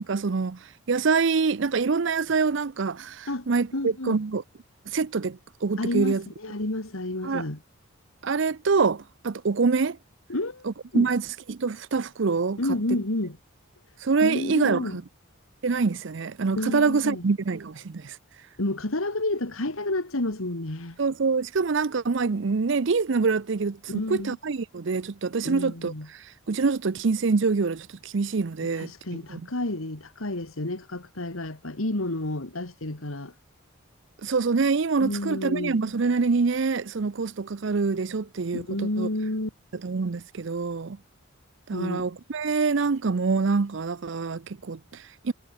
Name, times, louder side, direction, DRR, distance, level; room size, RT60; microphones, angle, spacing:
voice 1, 0.1-4.4 4.9-6.2 7.2-7.5 8.2-10.0 10.6-11.2 11.5-12.6 14.0-15.0 15.6-18.2 21.0-29.4 34.2-39.1 39.8-41.0 41.7-45.3, right 4 dB, 60° right, 0.5 m, -25 dB
voice 2, 3.7-4.2 5.8-7.6 10.3-10.7 10.9-11.1 12.6-13.4 14.2-15.0 16.6-17.2 18.6-21.0 23.9-24.4 25.4-26.1 28.7-33.3 35.0-35.8 38.5-39.5 41.7-42.1, left 1 dB, 80° left, 2.4 m, -30 dB
head